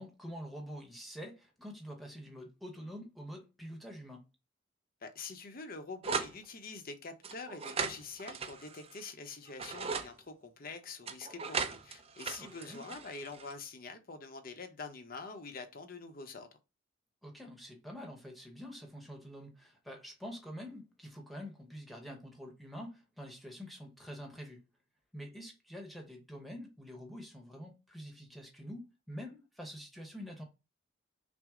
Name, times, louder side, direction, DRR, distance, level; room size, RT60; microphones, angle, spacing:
voice 1, 0.0-4.2 12.4-12.8 17.2-24.6 25.1-30.4, equal, ahead, 0.9 m, -46 dB
voice 2, 5.0-16.5, left 4 dB, 50° left, 0.7 m, -45 dB
sound 1, 6.0-6.4 7.2-9.0 9.5-10.1 11.1-13.5, right 5 dB, 30° right, 0.4 m, -38 dB
6.0 x 2.0 x 3.6 m
head